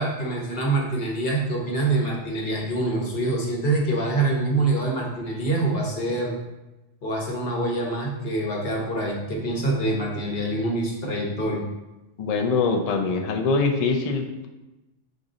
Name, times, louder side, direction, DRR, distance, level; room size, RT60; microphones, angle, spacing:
voice 1, 0.0-6.3 7.0-11.6, right 2 dB, 55° left, -1 dB, 1.1 m, -25 dB
voice 2, 12.2-14.5, left 4 dB, 75° left, 3 dB, 0.3 m, -23 dB
4.9 x 2.6 x 3.8 m, 1.0 s
omnidirectional pair, 1.2 m